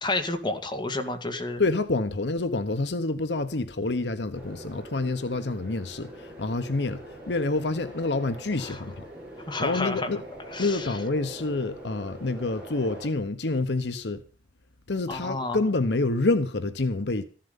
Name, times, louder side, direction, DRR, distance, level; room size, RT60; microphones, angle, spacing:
voice 1, 0.0-1.6 8.6-8.8 9.5-10.1 10.5-10.9 15.1-15.6, left 2 dB, 25° left, 2.2 m, -30 dB
voice 2, 1.6-9.0 9.6-10.2 10.6-14.2 14.9-17.2, left 2 dB, 70° left, 1.0 m, -27 dB
sound 1, 4.3-13.1, right 1 dB, 5° right, 7.4 m, -43 dB
14.5 x 11.5 x 5.5 m
head